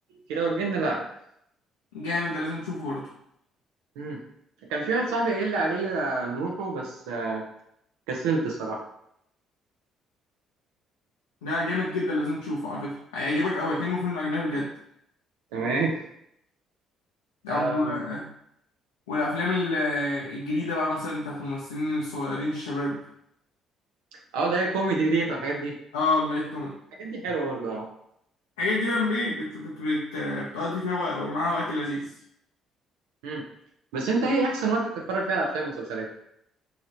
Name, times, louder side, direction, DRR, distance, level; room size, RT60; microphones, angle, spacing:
voice 1, 0.1-1.0 4.0-4.2 4.7-7.4 8.1-8.8 15.5-16.0 17.5-18.0 24.3-25.7 27.0-27.9 33.2-33.4 33.9-36.1, right 3 dB, 75° right, -1 dB, 0.5 m, -27 dB
voice 2, 1.9-3.1 11.4-14.7 17.4-18.3 19.1-23.0 25.9-26.7 28.6-32.1, left 2 dB, 85° left, -5 dB, 0.5 m, -28 dB
2.9 x 2.8 x 2.6 m, 0.74 s
hypercardioid pair, 50°, 0 cm